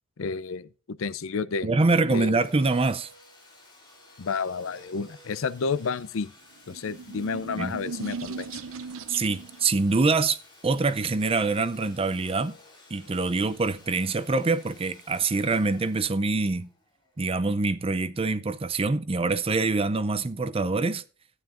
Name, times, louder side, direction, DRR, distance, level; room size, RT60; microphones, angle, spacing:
voice 1, 0.2-1.7 2.1-2.5 4.2-6.3 6.7-8.6, left 5 dB, 70° left, 0.5 m, -31 dB
voice 2, 1.6-3.1 7.6-7.8 9.1-10.4 10.6-12.6 12.9-16.7 17.2-21.0, right 3 dB, 25° right, 0.5 m, -25 dB
Domestic sounds home sounds, 2.2-17.6, left 1 dB, 20° left, 2.7 m, -54 dB
sound 1, 6.6-9.7, right 5 dB, 75° right, 0.6 m, -38 dB
13.0 x 9.3 x 2.5 m
head